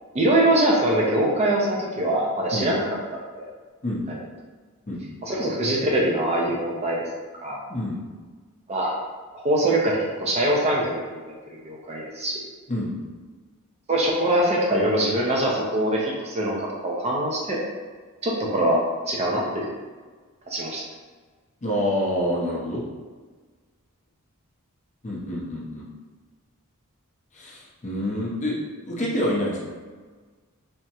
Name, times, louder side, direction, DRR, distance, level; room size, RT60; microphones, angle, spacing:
voice 1, 0.1-2.8 3.3-3.5 4.1-4.2 5.2-7.1 7.4-7.6 8.7-9.0 9.3-11.3 11.6-12.4 13.9-17.6 18.2-18.8 19.1-19.7 20.5-20.8, right 1 dB, 30° right, -3 dB, 0.4 m, -23 dB
voice 2, 21.6-22.9 25.0-25.9 27.3-28.6 28.8-29.6, left 1 dB, 35° left, -4 dB, 0.6 m, -27 dB
3.5 x 2.0 x 2.8 m, 1.4 s
head